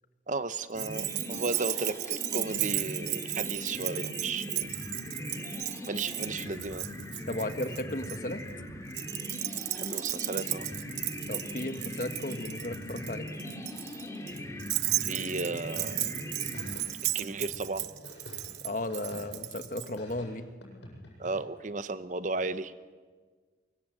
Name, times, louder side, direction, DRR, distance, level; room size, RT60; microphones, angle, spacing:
voice 1, 0.3-4.7 5.9-6.9 9.7-10.7 15.0-16.1 17.1-17.8 21.2-22.7, right 3 dB, 45° right, 13 dB, 0.9 m, -34 dB
sound 1, 0.7-17.3, left 1 dB, 15° left, 2.3 m, -40 dB
Keys jangling, 0.8-8.2 8.9-19.9, right 16 dB, 70° right, 0.8 m, -35 dB
voice 2, 7.3-8.4 11.3-13.3 18.6-20.5, left 1 dB, 45° left, 9 dB, 1.5 m, -35 dB
sound 2, 16.5-19.6 20.0-21.3, left 1 dB, 85° left, 8.0 m, -48 dB
24.0 x 24.0 x 7.9 m, 1.5 s
head